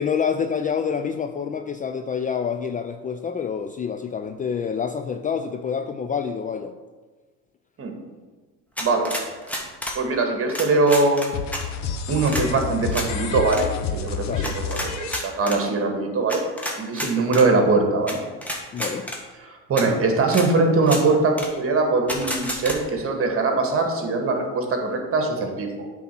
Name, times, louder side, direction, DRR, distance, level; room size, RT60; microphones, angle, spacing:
voice 1, 0.0-6.7 14.2-14.6 17.0-17.3 18.7-19.1, left 6 dB, 25° left, 7 dB, 0.4 m, -27 dB
sound 1, 8.8-10.0 10.5-11.6 12.3-12.5 12.9-13.1 13.5-13.6 14.4-15.6 16.3-17.5 18.1-18.2 18.4-19.2 19.8-19.9 20.3-20.5 20.8-21.0 21.4-21.5 22.1-22.8, equal, 5° left, 1.6 m, -30 dB
voice 2, 9.9-11.2 12.1-13.7 13.9-14.3 14.7-16.4 16.8-18.2 19.4-25.9, right 3 dB, 40° right, 3 dB, 1.8 m, -21 dB
sound 2, 11.3-15.2, left 5 dB, 50° left, 0.9 m, -29 dB
8.2 x 4.2 x 6.0 m, 1.3 s
supercardioid pair, 100°, 35 cm